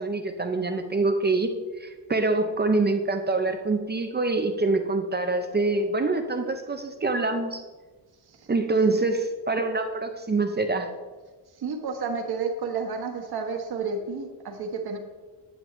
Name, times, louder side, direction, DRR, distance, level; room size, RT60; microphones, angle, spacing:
voice 1, 0.0-7.6 8.5-10.9, right 3 dB, 25° right, 6 dB, 0.5 m, -25 dB
voice 2, 11.6-15.0, right 4 dB, 60° right, 3 dB, 1.4 m, -31 dB
11.0 x 8.8 x 3.1 m, 1.3 s
wide cardioid pair, 170°, 44 cm